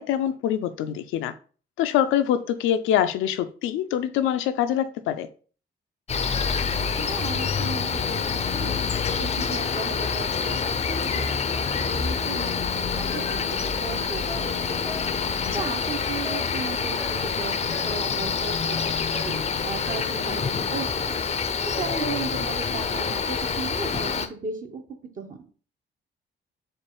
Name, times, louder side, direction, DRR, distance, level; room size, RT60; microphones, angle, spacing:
voice 1, 0.0-1.3 1.8-5.3 15.4-15.6, left 10 dB, 90° left, 0.5 m, -24 dB
Cricket, 6.1-24.3, left 6 dB, 35° left, 0.5 m, -27 dB
voice 2, 6.8-8.8 9.1-15.0 15.5-18.8 19.2-19.4 19.6-21.2 21.8-24.8 25.2-25.4, right 5 dB, 40° right, 1.1 m, -36 dB
sound 1, 14.3-17.4 17.7-18.2 19.1-20.3, equal, 20° right, 0.9 m, -43 dB
4.4 x 2.5 x 4.6 m
cardioid pair, 90°, 20 cm